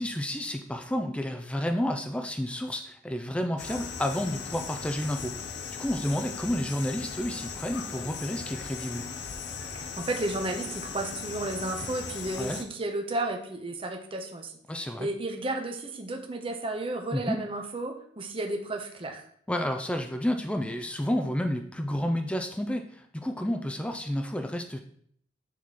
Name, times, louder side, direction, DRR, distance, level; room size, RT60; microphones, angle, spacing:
voice 1, 0.0-5.4 5.8-9.1 12.4-12.6 14.7-15.1 17.1-17.4 19.5-24.8, left 1 dB, 5° left, 5 dB, 0.4 m, -30 dB
sound 1, 3.6-12.6, left 5 dB, 60° left, 0.7 m, -38 dB
voice 2, 9.7-14.5 15.0-19.2, right 2 dB, 30° right, 4 dB, 0.8 m, -33 dB
8.1 x 3.1 x 4.1 m, 0.63 s
head